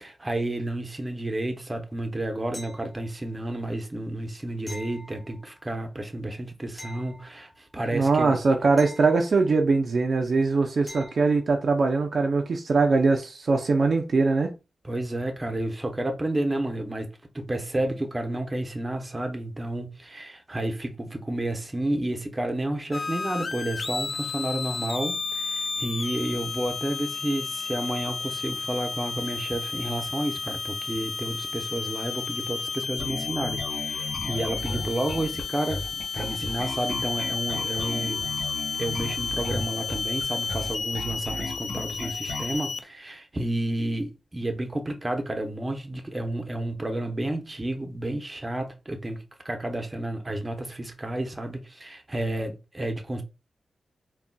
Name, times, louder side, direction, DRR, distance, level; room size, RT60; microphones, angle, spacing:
voice 1, 0.0-8.4 14.8-17.1 17.3-38.3 38.8-53.2, right 1 dB, 20° right, 0.7 m, -31 dB
sound 1, 2.5-3.3 4.7-5.7 6.8-7.8 8.8-9.8 10.9-11.5 14.2-14.3, left 1 dB, 15° left, 1.2 m, -45 dB
voice 2, 7.9-14.5, right 3 dB, 60° right, 0.5 m, -22 dB
sound 2, 22.9-42.8, left 5 dB, 60° left, 0.3 m, -32 dB
Bass guitar, 33.0-42.6, left 1 dB, 75° left, 1.2 m, -35 dB
3.8 x 2.3 x 2.2 m
cardioid pair, 75°, 0 cm